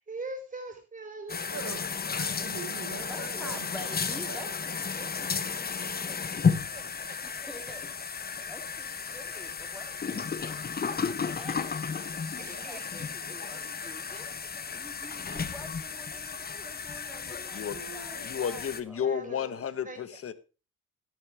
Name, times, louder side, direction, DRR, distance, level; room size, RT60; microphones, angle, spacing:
voice 1, 0.1-2.0 5.3-5.5 5.8-7.2 12.4-13.6 16.5-16.6 17.7-18.4 19.0-20.2, right 2 dB, 25° right, 4.8 m, -44 dB
sound 1, 1.3-18.8, left 5 dB, 30° left, 1.1 m, -33 dB
voice 2, 1.5-1.8 2.1-4.5 8.2-8.5, right 6 dB, 60° right, 5.0 m, -43 dB
voice 3, 3.1-5.4 7.2-7.8 8.4-11.8 12.3-14.3 14.7-19.2, equal, ahead, 3.0 m, -48 dB
voice 4, 18.2-20.3, left 8 dB, 50° left, 1.3 m, -32 dB
13.0 x 11.0 x 3.5 m
cardioid pair, 90°, 30 cm